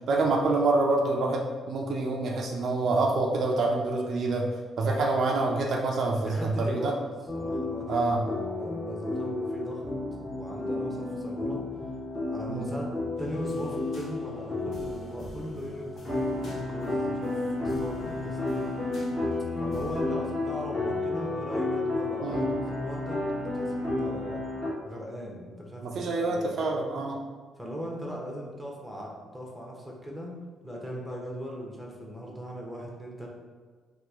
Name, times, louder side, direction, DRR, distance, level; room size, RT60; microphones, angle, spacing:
voice 1, 0.1-4.5 4.8-6.9 7.9-8.2 12.5-12.7 22.2-22.5 25.8-27.2, right 3 dB, 65° right, 0 dB, 0.4 m, -26 dB
voice 2, 6.2-7.0 7.3-9.8 10.3-11.6 12.3-12.9 13.2-18.8 19.6-24.4 24.8-26.6 27.6-30.3 30.6-33.3, equal, ahead, -2 dB, 0.7 m, -39 dB
sound 1, 7.3-24.7, left 2 dB, 25° left, 1.0 m, -32 dB
sound 2, 13.1-17.3 17.7-20.0, equal, 65° left, 0.9 m, -46 dB
2.9 x 2.3 x 3.5 m, 1.4 s
cardioid pair, 90°, 0 cm